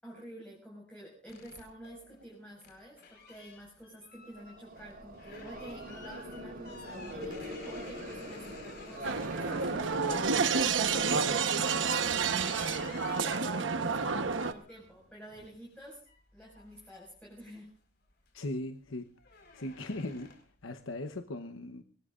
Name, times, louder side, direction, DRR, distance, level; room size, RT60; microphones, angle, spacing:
voice 1, 0.0-16.0 16.3-17.7, right 1 dB, 5° left, 5.5 m, -50 dB
sound 1, 1.3-10.7 11.3-17.7 18.1-18.5 18.8-20.6, left 4 dB, 55° left, 4.6 m, -53 dB
sound 2, 4.4-11.2, equal, 45° right, 4.3 m, -42 dB
sound 3, 9.0-14.5, right 5 dB, 65° right, 1.1 m, -29 dB
voice 2, 18.3-19.1 19.5-20.3 20.6-21.8, left 1 dB, 80° left, 1.0 m, -38 dB
25.5 x 19.0 x 2.5 m
head